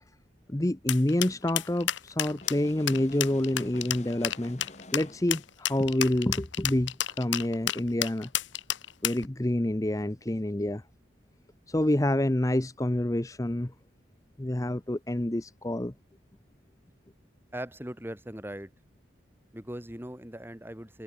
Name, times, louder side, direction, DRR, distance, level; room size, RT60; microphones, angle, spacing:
voice 1, 0.5-4.7 4.9-8.3 9.0-10.8 11.7-13.7 14.4-15.9, left 1 dB, 15° left, 0.7 m, -28 dB
sound 1, 0.9-9.3, left 12 dB, 75° left, 1.0 m, -30 dB
sound 2, 2.4-5.6, left 2 dB, 35° left, 2.0 m, -49 dB
voice 2, 17.5-18.7 19.5-21.0, right 1 dB, 10° right, 2.1 m, -39 dB
head